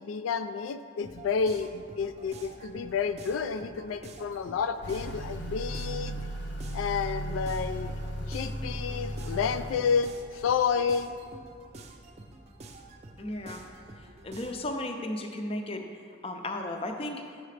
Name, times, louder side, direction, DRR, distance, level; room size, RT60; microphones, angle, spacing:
voice 1, 0.0-6.1 6.7-7.9 8.3-11.2, left 6 dB, 90° left, 11 dB, 0.3 m, -30 dB
sound 1, 1.0-14.7, right 2 dB, 35° right, 0.5 m, -48 dB
Motor vehicle (road) / Accelerating revving vroom, 4.8-9.8, equal, 60° left, 0.7 m, -36 dB
voice 2, 13.2-13.6 14.0-15.8 16.2-17.2, left 1 dB, 30° left, 4 dB, 0.5 m, -35 dB
7.9 x 6.6 x 3.3 m, 2.1 s
head